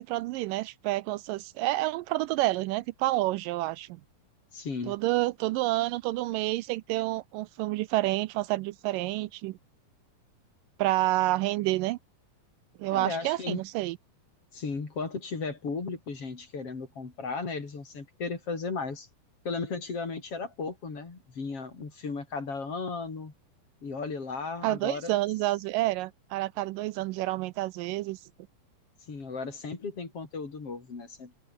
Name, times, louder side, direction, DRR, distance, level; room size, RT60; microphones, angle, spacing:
voice 1, 0.0-4.0 4.9-9.6 10.8-12.0 12.8-14.0 24.6-28.2, right 17 dB, 80° right, 2.2 m, -29 dB
voice 2, 4.5-5.0 12.9-13.6 14.5-19.1 19.4-23.3 23.8-25.1 29.1-31.4, left 4 dB, 40° left, 4.9 m, -35 dB
omnidirectional pair, 4.0 m